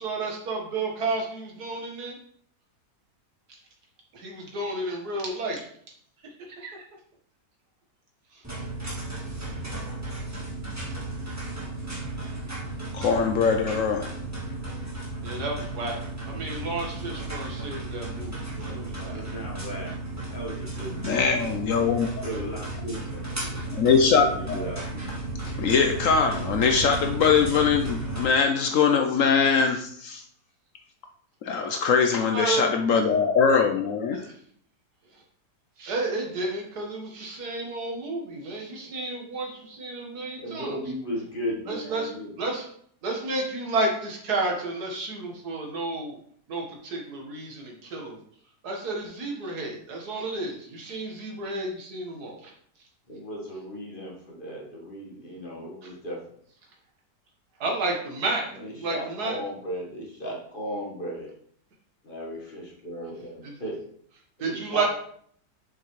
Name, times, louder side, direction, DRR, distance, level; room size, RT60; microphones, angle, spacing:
voice 1, 0.0-2.2 4.1-5.7 6.5-6.7 8.3-8.4 15.2-16.0 16.3-19.2 22.3-22.4 23.5-23.7 32.3-33.2 35.8-40.8 41.7-42.1 42.4-42.7 43.0-46.2 46.5-48.2 48.6-52.5 57.6-58.4 58.8-59.3 64.4-64.8, right 2 dB, 65° right, 0 dB, 2.0 m, -31 dB
sound 1, 8.4-28.2, right 2 dB, 10° right, 1.3 m, -34 dB
voice 2, 12.9-14.1 21.0-22.1 23.7-24.6 25.6-30.2 31.4-34.2, left 6 dB, 65° left, 5 dB, 0.8 m, -22 dB
voice 3, 19.0-19.9 20.2-21.4 22.2-23.6 23.9-25.4 40.4-42.3 53.1-56.2 58.6-61.3 62.0-63.8 64.4-64.8, equal, 30° left, -3 dB, 1.6 m, -36 dB
6.9 x 5.9 x 3.2 m, 0.62 s
omnidirectional pair, 1.8 m